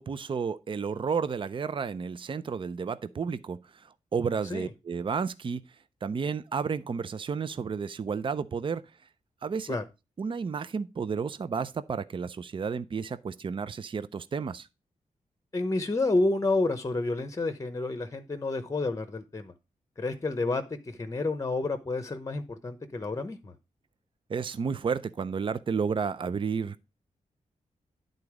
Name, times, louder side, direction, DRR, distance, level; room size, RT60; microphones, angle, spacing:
voice 1, 0.0-5.6 6.0-8.8 9.4-9.8 10.2-14.7 24.3-26.8, right 5 dB, 40° right, 0.5 m, -32 dB
voice 2, 15.5-19.5 20.0-23.5, left 2 dB, 25° left, 0.8 m, -29 dB
10.5 x 4.0 x 4.8 m
wide cardioid pair, 130°, 14 cm